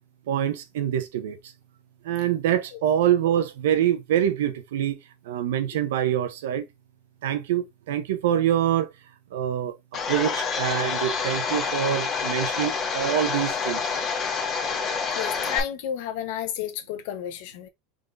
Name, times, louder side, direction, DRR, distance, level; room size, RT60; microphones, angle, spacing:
voice 1, 0.3-1.4 2.0-5.0 5.3-6.6 7.2-8.9 9.3-9.7 10.1-13.8, right 10 dB, 85° right, 0.8 m, -25 dB
Domestic sounds home sounds, 9.9-15.6, left 5 dB, 35° left, 1.4 m, -28 dB
voice 2, 15.1-17.7, left 10 dB, 70° left, 1.0 m, -31 dB
4.8 x 3.8 x 2.6 m
supercardioid pair, 120°, 0 cm